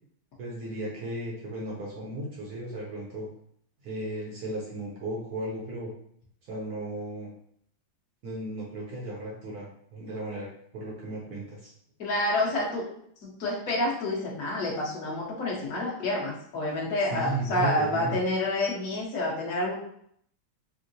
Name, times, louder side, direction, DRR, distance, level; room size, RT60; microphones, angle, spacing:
voice 1, 0.4-3.3 3.8-5.9 6.4-7.3 8.2-11.7 17.1-18.2, right 1 dB, 70° right, -4 dB, 0.9 m, -35 dB
voice 2, 12.0-12.8 13.2-19.7, left 1 dB, 55° left, -3 dB, 1.1 m, -28 dB
4.6 x 2.1 x 2.6 m, 0.67 s
omnidirectional pair, 2.3 m